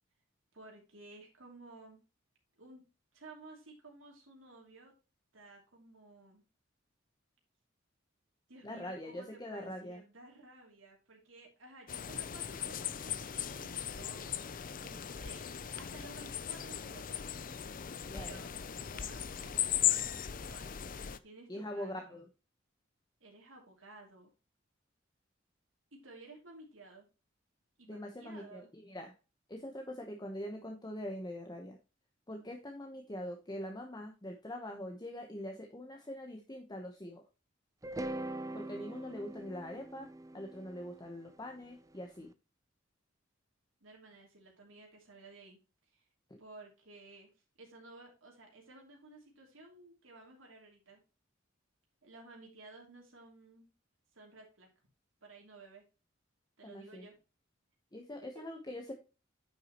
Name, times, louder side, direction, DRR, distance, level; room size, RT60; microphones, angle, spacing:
voice 1, 0.5-2.0 2.6-2.8 3.1-4.9 5.3-6.4 8.5-14.3 14.8-15.5 15.7-17.6 18.1-18.6 18.9-20.9 21.2-22.2 23.2-24.3 25.9-27.1 27.8-28.7 43.8-45.6 45.9-46.0 46.4-47.3 47.6-51.0 52.0-53.7 54.1-54.7 55.2-55.8 56.6-57.2, right 2 dB, 85° right, 0 dB, 2.9 m, -55 dB
voice 2, 8.6-10.0 18.1-18.5 21.5-22.3 27.9-29.1 29.5-31.8 32.3-37.2 38.5-40.1 40.3-42.3 56.6-57.1 57.9-58.9, left 1 dB, 20° left, 2 dB, 1.0 m, -43 dB
sound 1, 11.9-21.2, left 10 dB, 45° left, 0.5 m, -37 dB
sound 2, 37.8-42.0, right 1 dB, 15° right, 0.5 m, -43 dB
9.3 x 6.2 x 3.0 m, 0.30 s
head